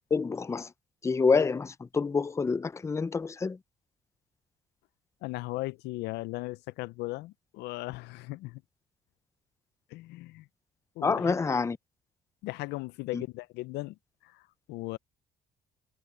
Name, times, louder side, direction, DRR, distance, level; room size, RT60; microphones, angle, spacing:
voice 1, 0.1-0.7 1.0-3.6 11.0-11.8 13.1-13.2, left 4 dB, 15° left, 0.5 m, -27 dB
voice 2, 5.2-8.6 9.9-10.5 11.0-11.4 12.4-14.0 14.2-14.4 14.7-15.0, left 20 dB, 85° left, 0.5 m, -37 dB
cardioid pair, 110°, 17 cm